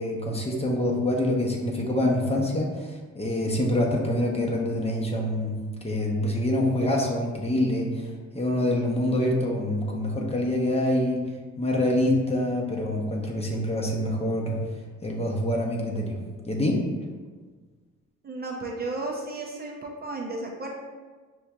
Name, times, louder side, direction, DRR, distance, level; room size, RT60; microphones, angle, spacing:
voice 1, 0.0-5.5 5.8-8.1 8.3-11.2 11.6-14.6 15.0-16.2 16.5-16.8, left 1 dB, 20° left, -1 dB, 0.7 m, -25 dB
voice 2, 18.2-20.8, right 2 dB, 30° right, -1 dB, 0.5 m, -33 dB
6.0 x 2.6 x 2.2 m, 1.4 s
cardioid pair, 90°, 30 cm